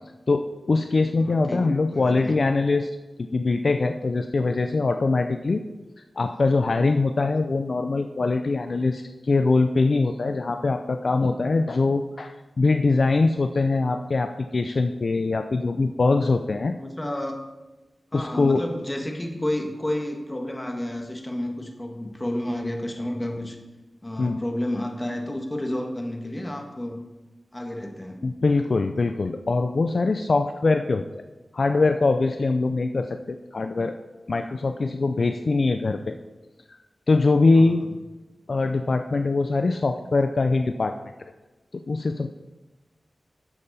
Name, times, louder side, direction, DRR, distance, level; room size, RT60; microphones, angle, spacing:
voice 1, 0.3-2.9 3.3-5.6 6.2-16.7 18.1-18.6 24.2-24.4 28.2-31.1 31.5-33.9 34.3-36.2 36.7-36.8 37.1-37.8 38.5-41.0 41.9-42.3, left 3 dB, 60° left, 7 dB, 0.5 m, -22 dB
voice 2, 1.2-2.4 16.8-17.4 18.1-23.6 24.0-27.0 27.5-28.2 37.5-37.9, left 1 dB, 20° left, 3 dB, 1.5 m, -31 dB
12.0 x 7.5 x 4.2 m, 1.1 s
wide cardioid pair, 75°, 0 cm